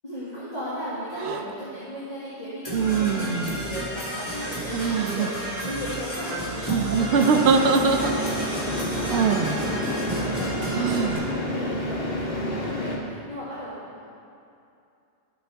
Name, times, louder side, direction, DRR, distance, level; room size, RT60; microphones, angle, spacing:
voice 1, 0.0-14.0, equal, 35° left, -12 dB, 2.0 m, -36 dB
sound 1, 1.2-1.4 2.7-3.6 4.7-5.3 6.6-8.4 9.1-9.5 10.7-11.2, right 6 dB, 70° right, 0.8 m, -23 dB
Percussion / Brass instrument, 2.6-11.2, equal, 15° left, 2.4 m, -32 dB
sound 2, 7.1-13.0, left 1 dB, 55° left, 1.4 m, -29 dB
15.0 x 5.9 x 3.4 m, 2.6 s
omnidirectional pair, 1.2 m